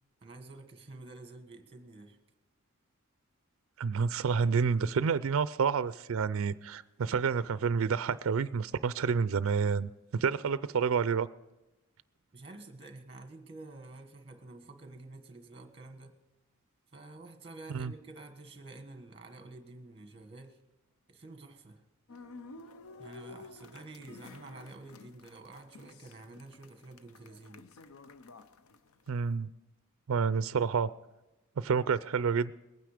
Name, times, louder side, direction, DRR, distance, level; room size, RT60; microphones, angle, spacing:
voice 1, 0.2-2.2 12.3-16.2 16.9-20.6 21.1-21.8 23.0-27.6, right 2 dB, 25° right, 1.4 m, -49 dB
voice 2, 3.8-11.3 17.7-17.9 29.1-29.5 30.1-30.9 31.6-32.5, right 6 dB, 65° right, 0.4 m, -29 dB
sound 1, 22.1-29.1, left 3 dB, 80° left, 0.6 m, -52 dB
21.0 x 9.3 x 5.0 m
head